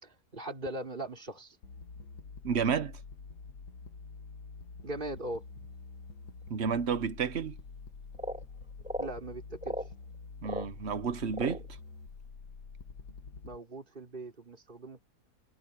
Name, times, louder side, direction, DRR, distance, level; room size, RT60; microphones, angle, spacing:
voice 1, 0.0-1.6 4.8-5.7 9.0-9.8 13.4-15.0, right 2 dB, 30° right, 3.7 m, -40 dB
sound 1, 1.6-13.6, left 4 dB, 90° left, 2.1 m, -47 dB
voice 2, 2.4-3.0 6.5-7.6 10.4-11.6, right 6 dB, 45° right, 1.2 m, -31 dB
sound 2, 8.1-8.4 8.8-9.2 9.6-9.9 10.4-10.7 11.3-11.7, equal, 5° right, 3.3 m, -36 dB
omnidirectional pair, 1.7 m